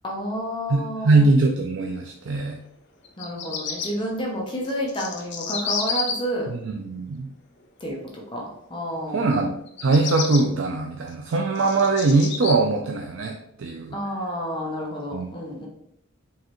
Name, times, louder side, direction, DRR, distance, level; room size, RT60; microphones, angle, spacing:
voice 1, 0.0-1.2 3.2-6.5 7.8-8.0 8.3-9.3 13.9-15.7, equal, 25° left, -2 dB, 0.8 m, -30 dB
voice 2, 0.7-2.6 6.5-7.3 9.1-14.0 15.1-15.3, right 3 dB, 70° right, 2 dB, 0.4 m, -22 dB
Bird vocalization bird call bird song, 3.0-3.9 4.6-6.1 9.7-10.4 11.1-12.5, left 6 dB, 60° left, 0.7 m, -30 dB
4.6 x 3.2 x 3.0 m, 0.76 s
head